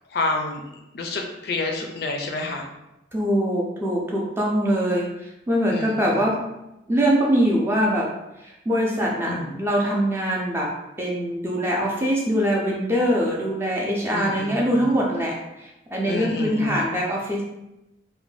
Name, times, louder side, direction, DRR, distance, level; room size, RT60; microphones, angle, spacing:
voice 1, 0.1-0.6 0.9-2.6 5.7-5.9 9.3-9.5 14.1-14.9 16.1-16.8, left 2 dB, 55° left, 3 dB, 0.4 m, -28 dB
voice 2, 3.1-6.4 6.9-8.1 8.4-10.7 11.0-17.4, equal, 10° right, -3 dB, 0.4 m, -23 dB
2.6 x 2.2 x 3.2 m, 0.91 s
head